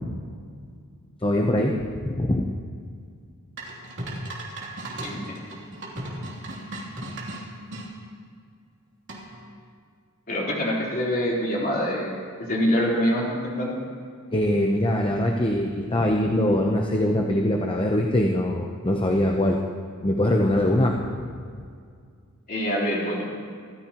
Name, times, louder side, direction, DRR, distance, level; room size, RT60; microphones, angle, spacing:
voice 1, 1.2-1.7 2.0-2.5 14.3-19.6 20.0-21.3, left 1 dB, 25° left, 1 dB, 0.9 m, -22 dB
sound 1, 3.6-7.9 9.1-9.5, right 1 dB, 55° right, 3.1 m, -36 dB
voice 2, 10.3-12.1 12.5-13.8 22.5-23.2, equal, 40° left, -5 dB, 3.9 m, -25 dB
26.5 x 14.0 x 3.0 m, 2.2 s
head